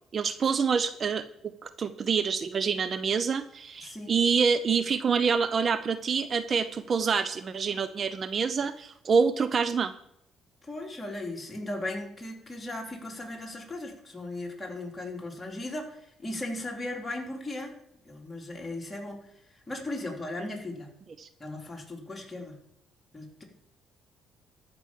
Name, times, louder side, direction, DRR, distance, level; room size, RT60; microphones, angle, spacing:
voice 1, 0.1-9.9 21.2-21.3, right 5 dB, 45° right, 12 dB, 0.7 m, -27 dB
voice 2, 3.8-4.2 10.6-17.8 18.0-20.9 21.4-22.6 23.1-23.4, left 2 dB, 20° left, -1 dB, 4.0 m, -37 dB
14.0 x 6.2 x 7.4 m, 0.78 s
hypercardioid pair, 60°, 0 cm